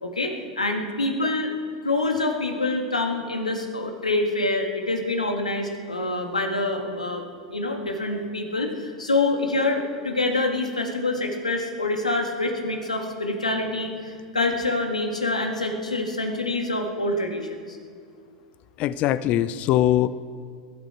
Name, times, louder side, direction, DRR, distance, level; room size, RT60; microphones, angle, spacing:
voice 1, 0.0-1.5 1.8-7.2 7.5-17.8, left 2 dB, 90° left, 3 dB, 1.7 m, -26 dB
voice 2, 18.8-20.1, left 13 dB, 40° left, 15 dB, 0.5 m, -21 dB
21.5 x 12.0 x 4.4 m, 2.1 s
figure-of-eight pair, 90°, 4 cm